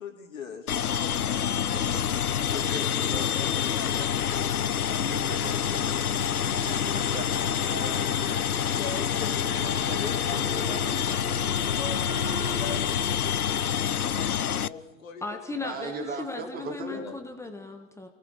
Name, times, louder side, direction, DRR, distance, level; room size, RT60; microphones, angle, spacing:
voice 1, 0.0-1.5 2.5-4.6 8.8-9.4 9.8-13.4 14.5-16.4 16.9-17.2, left 5 dB, 65° left, 4 dB, 3.7 m, -42 dB
sound 1, 0.7-14.7, left 9 dB, 85° left, 0.7 m, -27 dB
voice 2, 1.7-3.5 4.9-6.1 6.5-8.9 9.4-10.0 15.5-17.0, right 3 dB, 20° right, 2 dB, 4.2 m, -40 dB
sound 2, 5.2-13.6, right 6 dB, 45° right, 3.6 m, -43 dB
voice 3, 15.2-18.1, left 3 dB, 5° left, 5 dB, 1.5 m, -37 dB
29.0 x 20.0 x 4.9 m, 1.1 s
figure-of-eight pair, 115°, 43 cm